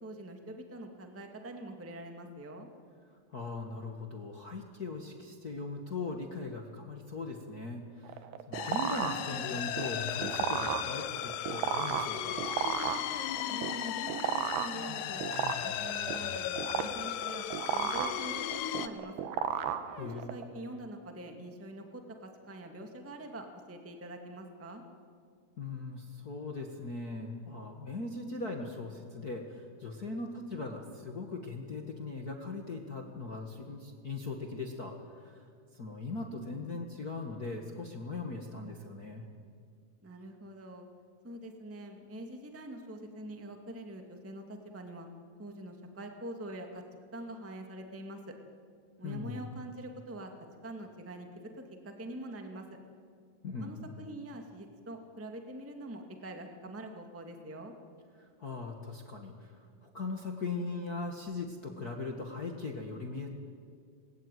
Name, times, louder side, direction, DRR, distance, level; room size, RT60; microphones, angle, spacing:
voice 1, 0.0-2.7 13.5-15.2 15.6-17.5 17.7-19.1 20.0-24.8 40.0-40.9 41.2-45.1 45.4-46.8 47.1-48.3 49.0-50.3 50.6-52.7 53.6-57.7, right 1 dB, 5° right, 4 dB, 1.0 m, -44 dB
voice 2, 3.3-12.4 19.9-20.3 25.6-39.3 49.0-49.4 53.4-53.9 58.2-63.3, left 3 dB, 70° left, 2 dB, 0.8 m, -40 dB
sound 1, 8.0-20.4, right 8 dB, 80° right, 3.3 m, -36 dB
sound 2, 8.5-18.9, left 11 dB, 90° left, 3.1 m, -36 dB
27.0 x 20.5 x 9.3 m, 2.2 s
omnidirectional pair, 4.6 m